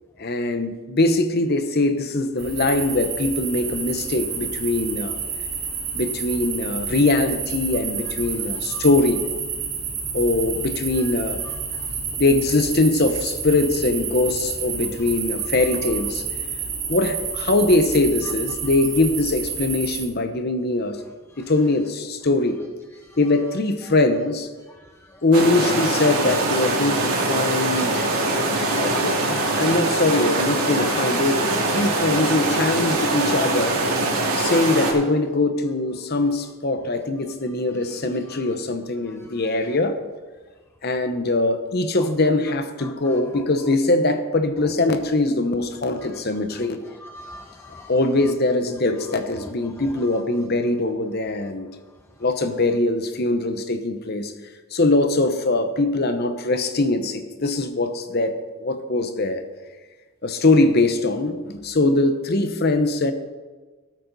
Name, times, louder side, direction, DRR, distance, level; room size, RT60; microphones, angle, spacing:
voice 1, 0.2-5.2 5.9-9.3 10.1-11.4 12.2-16.2 16.9-21.0 21.4-22.6 23.2-24.5 25.2-28.0 28.7-31.4 31.7-33.8 34.4-40.0 40.8-46.8 47.9-51.7 52.2-54.3 54.7-59.4 60.2-63.1, left 2 dB, 45° left, 8 dB, 0.9 m, -22 dB
sound 1, 2.4-20.0, right 6 dB, 35° right, 3.5 m, -29 dB
voice 2, 11.5-12.0 21.4-21.5 23.0-23.2 24.7-25.2 37.9-38.0 38.3-38.5 39.1-39.4 42.0-42.1 42.8-43.4 46.0-46.2 46.6-46.7 47.0-47.9 49.4-49.9, left 1 dB, 10° left, 4 dB, 0.4 m, -44 dB
sound 2, 25.3-34.9, right 2 dB, 85° right, 2.7 m, -23 dB
12.5 x 9.1 x 4.1 m, 1.3 s
head